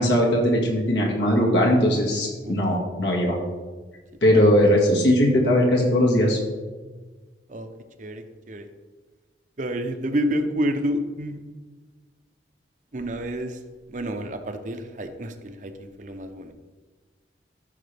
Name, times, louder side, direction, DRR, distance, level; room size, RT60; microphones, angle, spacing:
voice 1, 0.0-3.4 4.2-6.4, equal, 85° left, -1 dB, 2.1 m, -19 dB
voice 2, 8.0-8.7 9.6-11.4 12.9-13.6 13.9-16.5, equal, 45° right, 7 dB, 0.8 m, -29 dB
13.5 x 6.0 x 3.5 m, 1.3 s
head